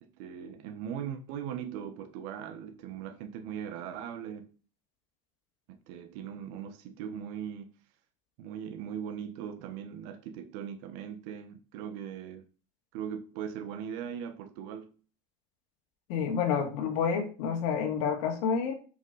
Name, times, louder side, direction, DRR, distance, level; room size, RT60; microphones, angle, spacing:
voice 1, 0.0-4.5 5.7-7.7 8.4-12.4 12.9-14.9, right 8 dB, 75° right, 1.0 m, -39 dB
voice 2, 16.1-18.7, left 6 dB, 75° left, 2.0 m, -29 dB
8.2 x 5.2 x 3.9 m
supercardioid pair, 135°, 16 cm